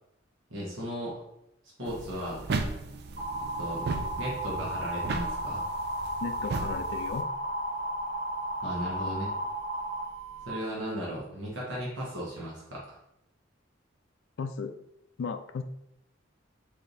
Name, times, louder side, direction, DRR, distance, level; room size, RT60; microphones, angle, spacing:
voice 1, 0.5-1.1 1.8-2.4 3.6-3.9 4.2-5.6 8.6-9.3 10.4-13.0, equal, 85° right, -5 dB, 1.2 m, -36 dB
sound 1, 1.9-7.2, right 3 dB, 60° right, 0.4 m, -36 dB
sound 2, 3.2-10.5, right 1 dB, 30° right, 1.0 m, -34 dB
voice 2, 6.2-7.3 14.4-14.8 15.2-15.6, left 5 dB, 70° left, 9 dB, 0.4 m, -35 dB
3.3 x 2.7 x 3.9 m, 0.80 s
head